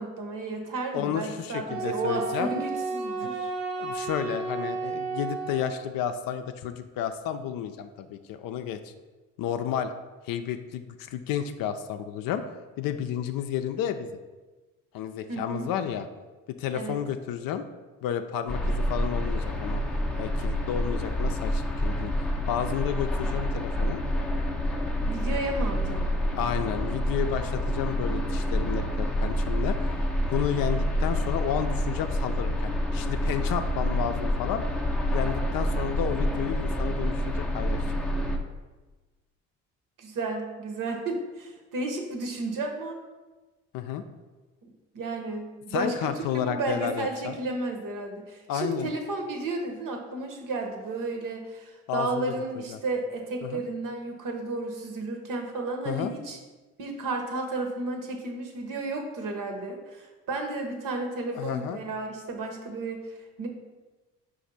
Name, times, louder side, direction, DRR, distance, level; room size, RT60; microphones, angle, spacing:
voice 1, 0.0-3.5 15.3-15.7 16.7-17.0 25.0-26.0 40.0-43.0 44.9-56.4 56.8-63.5, right 2 dB, 55° right, 3 dB, 1.0 m, -33 dB
voice 2, 0.9-2.6 3.8-8.9 9.4-9.9 10.2-12.4 12.8-14.1 14.9-16.1 16.6-17.6 18.0-19.8 20.2-24.0 26.4-29.9 30.3-34.6 35.1-38.0 43.7-44.0 45.7-47.4 48.5-48.9 51.9-52.3 52.7-52.8 53.4-53.6 55.9-56.1 61.3-61.8, left 9 dB, 60° left, 8 dB, 0.5 m, -31 dB
Wind instrument woodwind instrument, 1.7-5.9, right 4 dB, 80° right, 0.8 m, -32 dB
sound 1, 18.5-38.4, equal, 5° left, 0.5 m, -28 dB
5.0 x 2.6 x 4.0 m, 1.2 s
hypercardioid pair, 60°, 39 cm